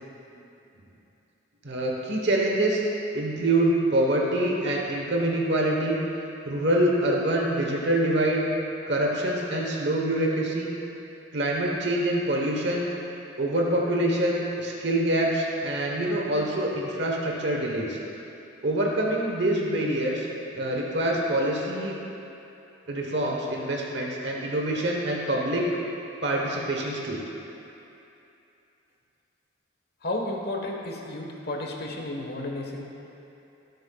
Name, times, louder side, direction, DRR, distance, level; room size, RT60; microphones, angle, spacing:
voice 1, 1.6-2.8 3.1-6.0 6.5-8.4 8.9-10.7 11.3-12.9 13.4-18.0 18.6-20.3 20.5-22.0 22.9-25.7 26.2-27.2, right 1 dB, 55° right, -1 dB, 1.1 m, -25 dB
voice 2, 30.0-32.8, left 1 dB, 50° left, 0 dB, 1.2 m, -32 dB
18.0 x 7.8 x 2.3 m, 2.9 s
head